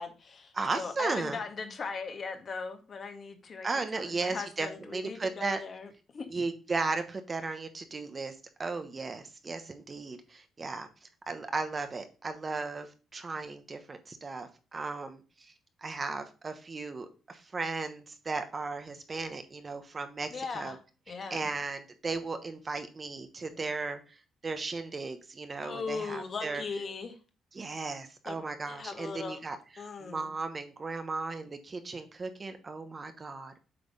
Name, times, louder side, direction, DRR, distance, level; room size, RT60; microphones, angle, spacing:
voice 1, 0.0-3.7 3.9-6.3 20.3-20.8 21.1-21.5 25.6-27.2 28.2-29.4 29.8-30.3, left 4 dB, 45° left, 6 dB, 1.6 m, -39 dB
voice 2, 0.5-1.4 3.6-5.6 6.3-8.3 8.6-15.5 15.8-20.8 21.3-24.2 24.4-26.6 27.5-33.7, right 3 dB, 30° right, 8 dB, 1.1 m, -36 dB
7.7 x 3.5 x 5.5 m, 0.34 s
cardioid pair, 90°, 0 cm